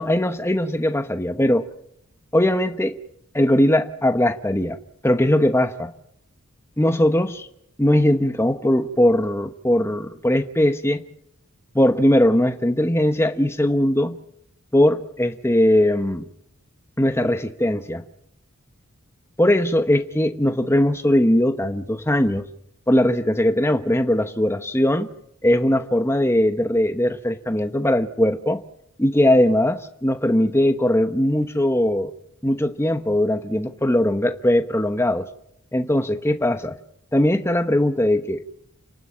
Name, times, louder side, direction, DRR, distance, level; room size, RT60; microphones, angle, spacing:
voice 1, 0.0-1.7 2.3-2.9 3.3-4.8 5.0-5.9 6.8-7.5 7.8-11.0 11.7-14.1 14.7-16.2 17.0-18.0 19.4-22.4 22.9-25.1 25.4-28.6 29.0-32.1 32.4-35.3 35.7-36.8 37.1-38.4, left 1 dB, 10° left, 8 dB, 1.0 m, -20 dB
29.5 x 12.5 x 7.4 m, 0.75 s
head